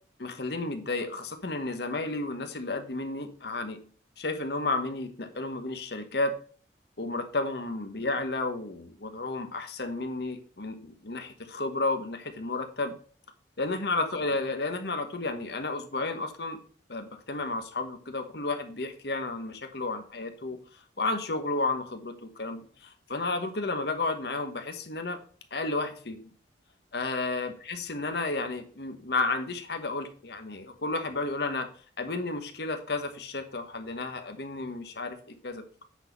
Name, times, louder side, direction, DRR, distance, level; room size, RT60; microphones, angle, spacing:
voice 1, 0.2-3.8 4.2-6.3 7.0-12.9 13.6-16.6 16.9-20.6 21.0-25.2 25.5-26.2 26.9-31.7 32.0-35.6, left 3 dB, 60° left, 8 dB, 1.1 m, -32 dB
8.8 x 4.1 x 5.2 m, 0.43 s
head